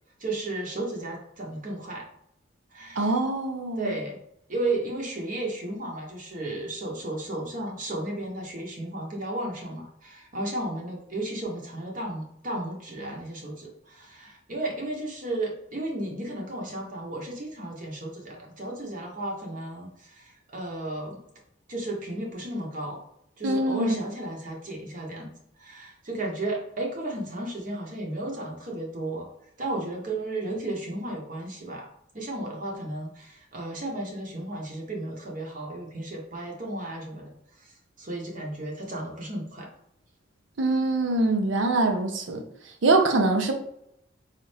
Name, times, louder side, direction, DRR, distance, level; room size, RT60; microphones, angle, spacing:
voice 1, 0.2-2.0 2.7-3.1 3.8-4.2 4.5-21.2 21.7-23.0 23.4-25.3 25.6-29.3 29.6-31.9 32.1-37.7 38.0-39.7, right 2 dB, 45° right, -1 dB, 0.8 m, -34 dB
voice 2, 3.0-3.9 23.4-24.0 40.6-42.4 42.8-43.5, right 2 dB, 85° right, 5 dB, 0.6 m, -23 dB
4.1 x 2.4 x 3.2 m, 0.74 s
head